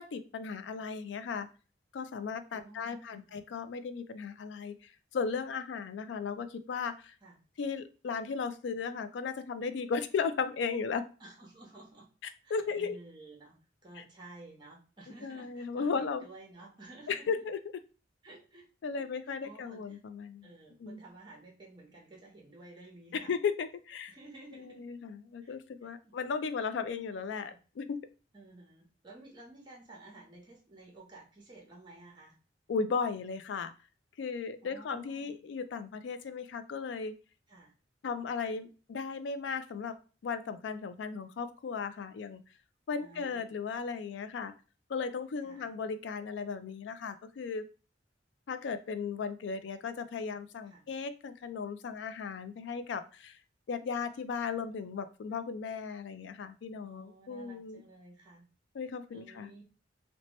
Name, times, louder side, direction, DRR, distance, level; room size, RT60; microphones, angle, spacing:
voice 1, 0.0-1.5 1.9-4.7 5.1-7.1 7.6-11.0 12.5-13.0 14.0-14.1 15.2-16.2 17.1-17.6 18.8-20.5 20.8-21.0 23.1-24.1 24.5-28.0 32.7-33.7 34.2-37.1 38.0-39.9 40.2-42.4 42.9-44.5 44.9-47.6 48.5-53.4 53.7-57.8 58.7-59.5, left 5 dB, 70° left, 11 dB, 0.3 m, -36 dB
voice 2, 2.5-3.2 7.2-7.4 11.2-12.1 12.4-13.5 13.8-17.3 18.2-18.7 18.9-20.0 20.4-23.3 24.1-24.8 25.4-25.5 25.8-26.1 27.4-27.6 28.3-32.4 34.6-35.3 37.5-37.7 43.0-43.5 45.4-45.7 50.6-50.8 56.8-58.5 59.1-59.6, right 2 dB, 25° right, -1 dB, 0.7 m, -53 dB
2.8 x 2.1 x 3.0 m, 0.35 s
head